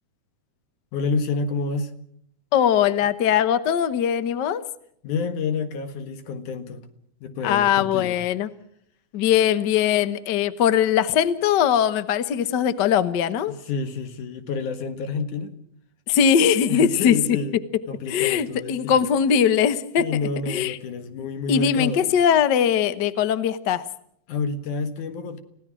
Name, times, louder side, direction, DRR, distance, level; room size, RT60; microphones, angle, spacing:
voice 1, 0.9-1.9 5.0-6.9 7.2-8.2 13.6-15.5 16.7-17.6 17.9-19.0 20.0-22.1 24.3-25.4, left 4 dB, 85° left, 3.2 m, -29 dB
voice 2, 2.5-4.6 7.4-8.5 9.1-13.5 16.1-17.2 18.1-20.1 20.5-20.8 21.5-23.8, left 8 dB, 65° left, 1.0 m, -20 dB
30.0 x 17.0 x 6.2 m
omnidirectional pair, 3.4 m